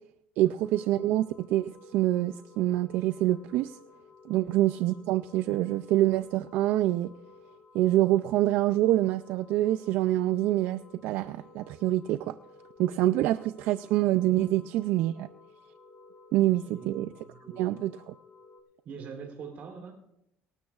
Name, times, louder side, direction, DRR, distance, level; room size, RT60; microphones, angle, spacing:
voice 1, 0.4-3.8 4.3-7.1 7.7-12.3 12.8-15.3 16.3-17.1 17.6-18.1, right 14 dB, 75° right, 13 dB, 0.4 m, -26 dB
sound 1, 0.6-18.6, left 3 dB, 20° left, 3.1 m, -54 dB
voice 2, 16.7-17.8 18.9-19.9, right 5 dB, 55° right, 4 dB, 3.5 m, -44 dB
25.0 x 12.5 x 2.4 m, 0.81 s
cardioid pair, 125°, 3 cm